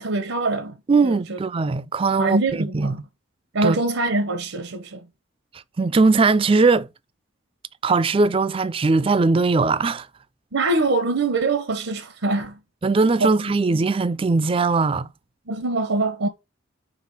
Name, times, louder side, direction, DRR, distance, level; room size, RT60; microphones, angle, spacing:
voice 1, 0.0-0.8 1.0-1.4 2.2-3.0 3.5-5.1 10.5-12.6 13.2-13.6 15.5-16.3, right 2 dB, 85° right, 0.8 m, -24 dB
voice 2, 0.9-3.0 3.6-3.8 5.8-6.9 7.8-10.1 12.8-15.1, right 3 dB, 25° right, 0.3 m, -20 dB
5.7 x 3.8 x 6.0 m
head